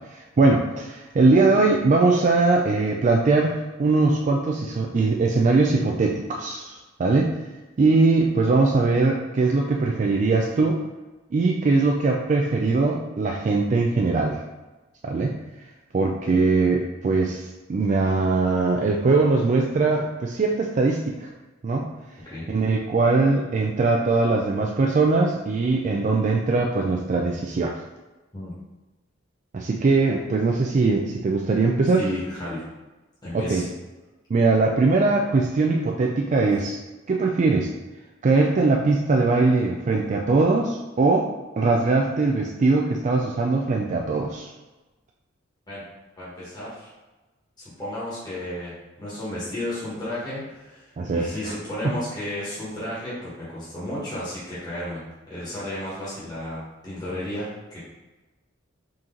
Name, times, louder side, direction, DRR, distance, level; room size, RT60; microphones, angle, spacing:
voice 1, 0.1-7.4 7.8-10.8 11.3-14.4 15.0-15.4 15.9-21.3 21.6-22.0 22.5-27.8 29.5-32.0 33.3-33.7 34.3-36.8 37.1-37.7 38.2-41.3 41.6-44.5 51.0-51.5 51.8-52.0, right 3 dB, 40° right, 0 dB, 0.3 m, -21 dB
voice 2, 32.0-32.6 33.2-33.7 45.7-45.8 46.2-46.9 47.6-55.0 55.3-57.8, left 1 dB, 20° left, -9 dB, 1.2 m, -33 dB
3.9 x 2.9 x 3.7 m, 1.2 s
head